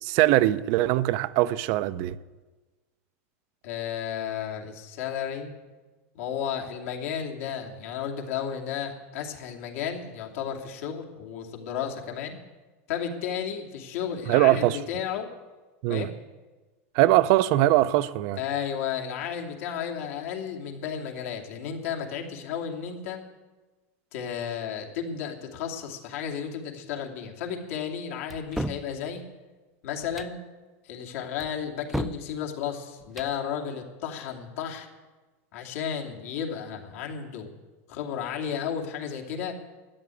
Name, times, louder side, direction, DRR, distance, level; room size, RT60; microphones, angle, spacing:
voice 1, 0.0-2.2 14.3-14.8 15.8-16.1 16.9-18.4, right 15 dB, 50° right, 0.6 m, -22 dB
voice 2, 3.6-5.5 6.1-12.4 12.9-15.3 15.9-16.1 18.4-23.2 24.1-29.2 29.8-30.4 30.8-34.9 35.5-37.5 37.9-39.5, left 8 dB, 70° left, 2.7 m, -33 dB
sound 1, 28.3-28.9 30.0-30.4 31.4-32.3 33.0-33.4, equal, ahead, 0.4 m, -33 dB
13.0 x 10.5 x 8.5 m
supercardioid pair, 145°, 8 cm